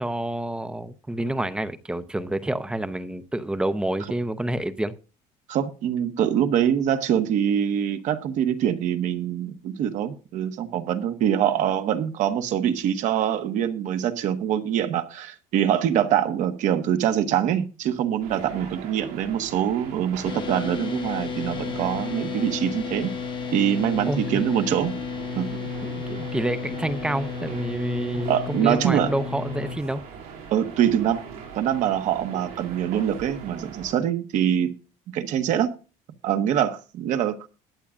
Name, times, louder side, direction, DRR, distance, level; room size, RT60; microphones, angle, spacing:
voice 1, 0.0-4.9 24.1-24.4 25.8-30.0, right 1 dB, 5° right, 0.6 m, -28 dB
voice 2, 5.5-23.1 23.5-25.0 25.3-25.6 28.3-29.1 30.5-31.2 31.5-34.7 35.1-35.7 36.2-37.5, right 10 dB, 55° right, 1.2 m, -24 dB
sound 1, 18.2-34.0, right 7 dB, 90° right, 7.8 m, -41 dB
sound 2, 20.2-29.8, left 6 dB, 35° left, 1.0 m, -33 dB
20.5 x 8.5 x 2.5 m
cardioid pair, 165°, 15 cm